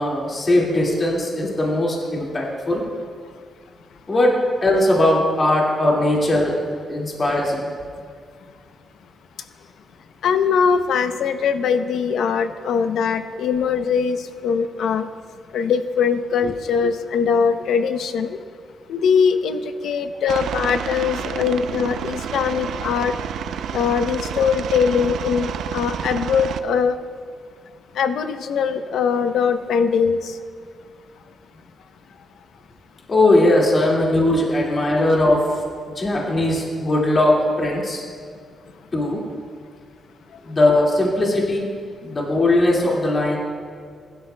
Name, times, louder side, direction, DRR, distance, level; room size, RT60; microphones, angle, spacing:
voice 1, 0.0-2.8 4.1-4.3 4.6-6.5 6.9-7.7 33.1-35.4 36.0-38.0 38.9-39.2 40.4-41.7 42.0-43.4, left 1 dB, 30° left, -3 dB, 2.0 m, -19 dB
voice 2, 10.2-15.1 15.5-18.4 18.9-23.1 23.7-27.0 27.9-30.4 40.3-40.4, left 6 dB, 85° left, 9 dB, 0.6 m, -21 dB
Aircraft, 20.3-26.6, right 8 dB, 85° right, 0.4 m, -29 dB
21.0 x 12.0 x 2.2 m, 2.1 s
wide cardioid pair, 175°, 0 cm